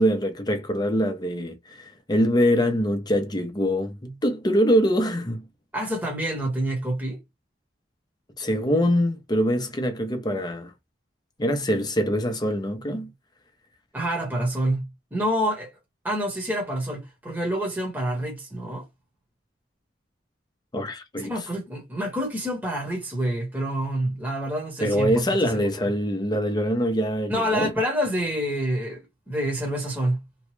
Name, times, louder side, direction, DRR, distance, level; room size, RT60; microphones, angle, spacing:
voice 1, 0.0-5.4 8.4-10.7 11.4-13.1 20.7-21.3 24.8-27.7, equal, 25° left, 0.7 m, -24 dB
voice 2, 5.7-7.2 13.9-15.7 16.0-18.8 21.2-25.2 25.5-25.9 27.3-30.2, equal, 10° right, 1.1 m, -27 dB
3.0 x 2.3 x 3.1 m
head